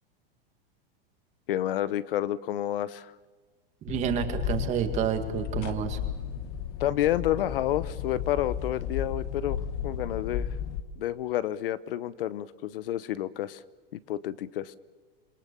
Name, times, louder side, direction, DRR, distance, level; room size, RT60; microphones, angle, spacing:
voice 1, 1.5-3.1 6.8-10.5 11.0-13.6 14.1-14.7, left 12 dB, 70° left, 17 dB, 1.0 m, -29 dB
sound 1, 3.9-10.8, left 9 dB, 30° left, 1.3 m, -34 dB
voice 2, 3.9-6.0, right 9 dB, 25° right, 7 dB, 2.0 m, -29 dB
27.5 x 22.0 x 6.9 m, 1.4 s
supercardioid pair, 165°, 29 cm